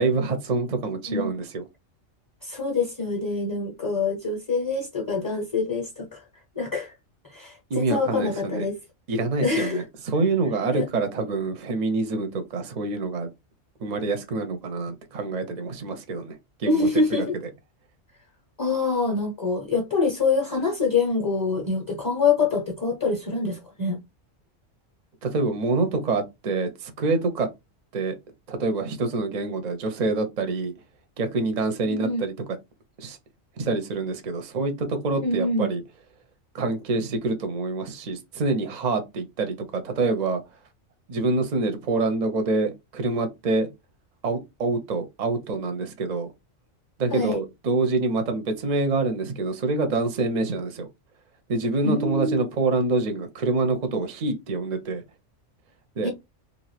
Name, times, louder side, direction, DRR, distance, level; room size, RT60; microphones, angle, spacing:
voice 1, 0.0-1.6 7.7-8.7 9.1-9.8 10.1-13.3 13.8-17.3 25.2-27.5 27.9-28.2 28.5-30.7 31.2-32.3 33.0-33.2 33.6-35.8 36.5-40.4 41.1-43.7 44.2-46.3 47.0-50.9 51.5-55.0 56.0-56.1, right 3 dB, 50° right, 0.5 m, -26 dB
voice 2, 0.8-1.3 2.4-6.2 6.5-6.9 7.2-8.7 9.4-9.8 10.7-10.9 16.7-17.3 18.6-24.0 31.8-32.2 35.1-35.7 47.1-47.4 51.8-52.4 56.0-56.1, left 3 dB, 20° left, 0.6 m, -25 dB
2.7 x 2.5 x 3.2 m
omnidirectional pair, 1.3 m